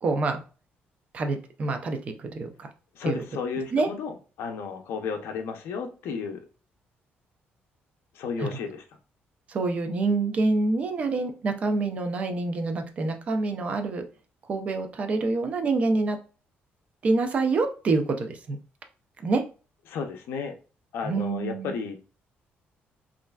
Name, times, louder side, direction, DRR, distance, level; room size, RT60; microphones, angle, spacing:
voice 1, 0.0-0.4 1.1-2.7 3.0-3.2 3.7-3.9 8.4-8.6 9.5-14.0 14.5-16.2 17.0-18.6 19.2-19.4 21.0-21.7, right 3 dB, 35° right, 6 dB, 0.4 m, -26 dB
voice 2, 2.9-6.4 8.1-8.8 19.9-20.6 20.9-22.0, left 5 dB, 75° left, 5 dB, 0.5 m, -33 dB
3.1 x 2.4 x 2.2 m, 0.35 s
cardioid pair, 170°, 4 cm